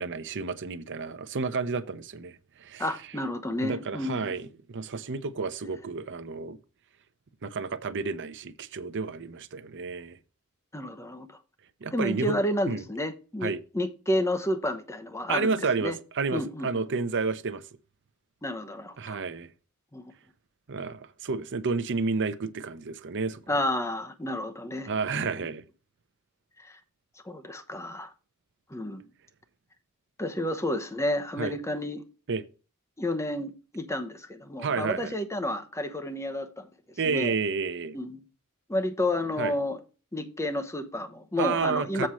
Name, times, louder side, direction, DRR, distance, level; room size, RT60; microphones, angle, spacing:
voice 1, 0.0-2.9 3.6-6.6 7.4-10.2 11.8-12.8 13.4-13.6 15.3-17.6 19.0-19.5 20.7-23.4 24.9-25.6 31.4-31.5 32.3-32.4 34.6-35.2 37.0-38.0 39.4-39.5 41.4-42.1, right 4 dB, 55° right, 0.7 m, -31 dB
voice 2, 2.8-4.5 10.7-11.3 11.9-16.0 16.3-16.8 18.4-19.2 19.9-20.0 23.5-25.2 26.6-26.8 27.2-28.1 28.7-29.0 30.2-32.0 33.0-36.6 37.0-37.3 37.9-38.2 38.7-39.8 40.1-42.1, left 1 dB, 15° left, 0.9 m, -31 dB
7.7 x 4.2 x 6.2 m
head